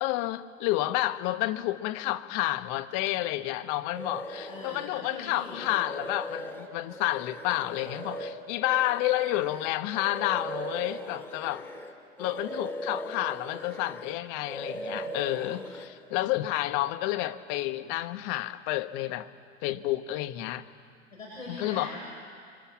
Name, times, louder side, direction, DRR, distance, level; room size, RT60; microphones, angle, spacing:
voice 1, 0.0-11.7 12.2-19.3 19.6-20.6 21.5-21.9, left 15 dB, 45° left, 10 dB, 1.4 m, -30 dB
sound 1, 3.9-4.9 5.3-11.9 12.2-14.2 14.4-15.9, right 1 dB, 5° left, 2.9 m, -39 dB
voice 2, 4.5-5.6 21.1-22.0, left 1 dB, 90° left, -4 dB, 7.4 m, -41 dB
28.0 x 25.5 x 7.4 m, 2.1 s
hypercardioid pair, 95°, 39 cm